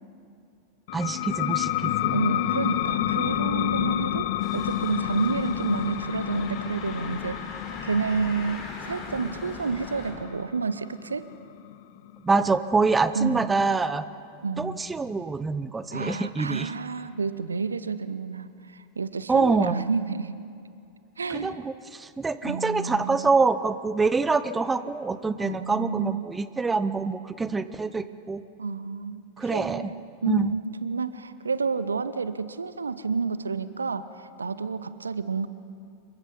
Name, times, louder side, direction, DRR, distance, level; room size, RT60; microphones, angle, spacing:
sound 1, 0.9-12.2, left 13 dB, 50° left, 0.8 m, -29 dB
voice 1, 0.9-2.2 12.2-14.0 14.6-16.7 19.3-19.8 21.3-28.4 29.4-29.9 30.3-30.6, right 4 dB, 15° right, 14 dB, 0.8 m, -25 dB
voice 2, 2.1-7.4 7.8-11.3 13.1-13.5 14.4-14.8 15.9-20.4 21.2-21.6 22.4-23.3 25.4-26.4 28.6-35.5, right 5 dB, 75° right, 14 dB, 0.8 m, -30 dB
sound 2, 2.6-10.3, left 2 dB, 10° left, 2.0 m, -46 dB
sound 3, 4.4-10.1, left 3 dB, 30° left, 5.0 m, -42 dB
27.5 x 23.0 x 5.4 m, 2.5 s
figure-of-eight pair, 90°, 0 cm